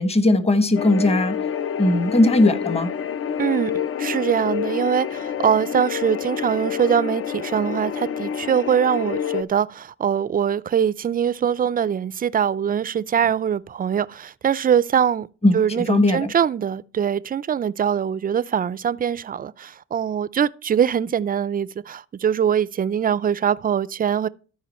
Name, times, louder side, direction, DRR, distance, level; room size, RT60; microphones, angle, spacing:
voice 1, 0.0-1.4 1.8-2.9 15.4-16.3, left 2 dB, 20° left, 1.2 m, -18 dB
sound 1, 0.8-9.4, left 8 dB, 50° left, 0.5 m, -28 dB
voice 2, 3.4-3.7 4.0-15.3 15.5-24.3, right 8 dB, 30° right, 0.4 m, -22 dB
13.0 x 5.1 x 4.2 m
cardioid pair, 90°, 30 cm